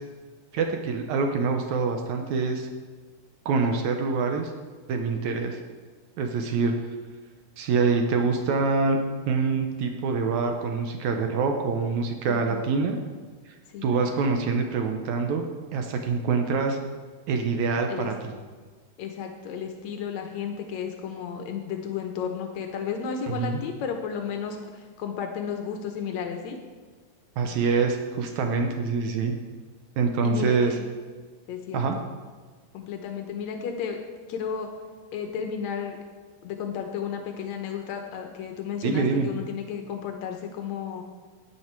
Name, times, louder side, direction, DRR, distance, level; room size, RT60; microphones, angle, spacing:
voice 1, 0.5-2.7 3.5-4.5 4.9-5.6 6.2-6.8 7.6-9.0 9.3-13.0 13.8-15.5 15.7-16.8 17.3-18.3 23.3-23.6 27.4-29.4 30.0-30.7 31.7-32.0 38.8-39.3, right 4 dB, 80° right, 4 dB, 1.7 m, -25 dB
voice 2, 12.3-12.7 13.7-13.9 17.9-18.1 19.0-26.6 30.2-30.8 31.5-32.0 32.7-34.0 34.3-34.7 35.1-36.0 36.4-41.0, left 7 dB, 85° left, 4 dB, 1.6 m, -33 dB
13.5 x 9.9 x 4.6 m, 1.5 s
omnidirectional pair, 4.5 m